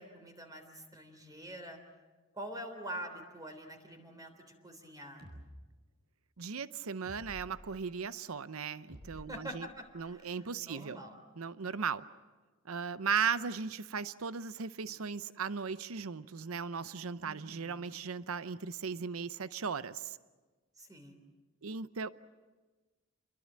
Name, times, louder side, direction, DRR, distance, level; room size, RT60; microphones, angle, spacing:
voice 1, 0.0-1.8 2.3-5.3 9.1-11.2 17.2-17.8 20.8-21.2, right 1 dB, 15° right, 6 dB, 3.5 m, -46 dB
sound 1, 5.2-5.5 7.0-7.6 8.9-10.0, equal, 45° right, 6.4 m, -51 dB
voice 2, 6.4-9.7 9.9-11.0 11.4-12.0 12.7-20.2 21.6-22.1, right 6 dB, 85° right, 14 dB, 0.7 m, -37 dB
28.5 x 22.5 x 7.6 m, 1.3 s
head